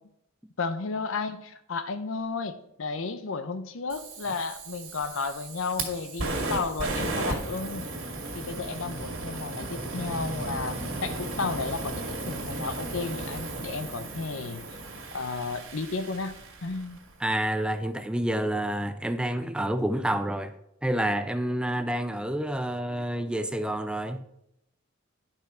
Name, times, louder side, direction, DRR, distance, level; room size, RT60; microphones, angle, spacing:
voice 1, 0.6-7.9 8.3-14.6 15.1-17.0, left 4 dB, 70° left, 0.7 m, -33 dB
Fire, 3.9-17.0, right 2 dB, 75° right, 2.3 m, -35 dB
voice 2, 17.2-20.5 20.8-24.2, right 1 dB, 5° right, 0.4 m, -28 dB
10.5 x 5.9 x 4.3 m
head